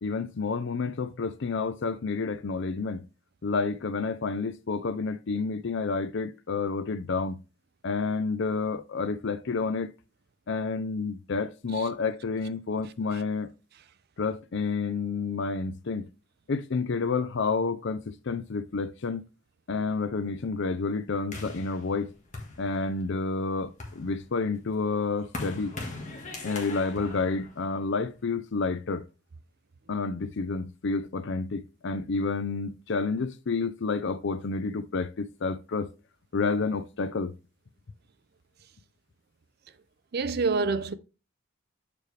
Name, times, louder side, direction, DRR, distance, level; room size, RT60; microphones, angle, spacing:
voice 1, 0.0-3.0 3.4-7.4 7.8-9.9 10.5-13.5 14.2-16.1 16.5-19.2 19.7-22.1 22.6-25.8 26.4-29.0 29.9-35.9 36.3-37.3, left 4 dB, 60° left, 0.5 m, -29 dB
sound 1, 21.3-23.1 23.6-28.2, left 2 dB, 35° left, 1.5 m, -41 dB
voice 2, 40.1-40.9, right 4 dB, 50° right, 0.4 m, -27 dB
6.8 x 4.7 x 3.3 m
head